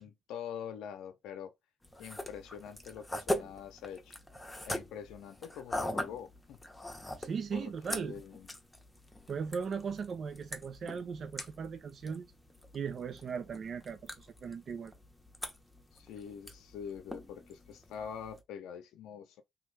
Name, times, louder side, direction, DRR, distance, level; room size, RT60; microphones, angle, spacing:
voice 1, 0.0-1.5 2.0-4.2 4.6-6.6 7.5-8.5 15.9-19.4, left 8 dB, 85° left, 0.6 m, -45 dB
sound 1, 1.8-18.4, left 1 dB, 10° left, 0.8 m, -42 dB
voice 2, 7.2-8.2 9.3-12.3 12.7-14.9, right 6 dB, 50° right, 0.4 m, -38 dB
3.0 x 2.3 x 3.2 m
cardioid pair, 90°, 0 cm